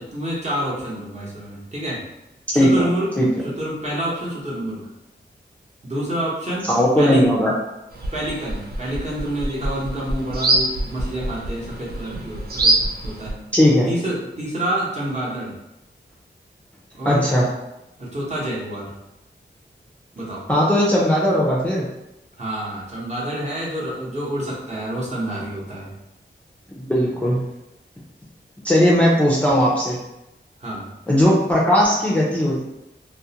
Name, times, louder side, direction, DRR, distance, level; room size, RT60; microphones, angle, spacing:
voice 1, 0.0-2.0 2.6-3.1 3.6-4.8 5.8-6.7 7.0-7.3 8.1-13.4 13.9-15.5 16.9-17.3 18.0-18.9 20.2-20.4 22.4-25.9 30.6-30.9, right 1 dB, 35° right, -6 dB, 0.8 m, -28 dB
voice 2, 2.5-2.8 3.2-3.3 6.7-7.5 13.5-13.9 17.1-17.5 20.5-21.9 26.8-27.4 28.6-30.0 31.1-32.6, equal, 5° left, -5 dB, 0.4 m, -17 dB
sound 1, 7.9-13.3, right 2 dB, 55° right, 0.4 m, -25 dB
2.4 x 2.0 x 2.8 m, 0.93 s
wide cardioid pair, 100°, 19 cm